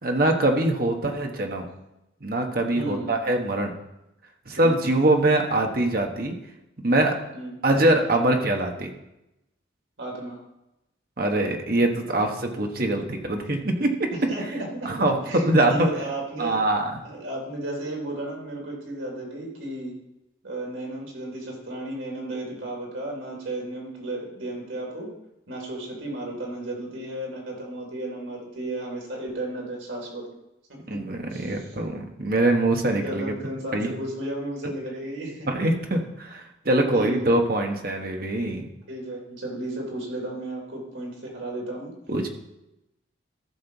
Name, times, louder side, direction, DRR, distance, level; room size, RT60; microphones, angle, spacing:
voice 1, 0.0-1.7 2.2-3.7 4.5-6.4 6.8-7.2 7.6-8.9 11.2-14.1 14.8-15.9 16.4-16.9 30.9-33.2 33.7-33.9 35.5-38.7 42.1-42.3, right 1 dB, 45° right, 3 dB, 1.3 m, -23 dB
voice 2, 2.7-3.2 4.6-4.9 7.3-7.5 10.0-10.4 14.1-14.9 15.2-16.6 17.0-19.9 20.4-25.1 25.5-30.3 30.9-31.0 31.3-31.8 32.9-35.5 36.9-37.4 38.9-41.9, right 1 dB, 80° right, -1 dB, 3.3 m, -34 dB
13.5 x 6.5 x 4.0 m, 0.90 s
head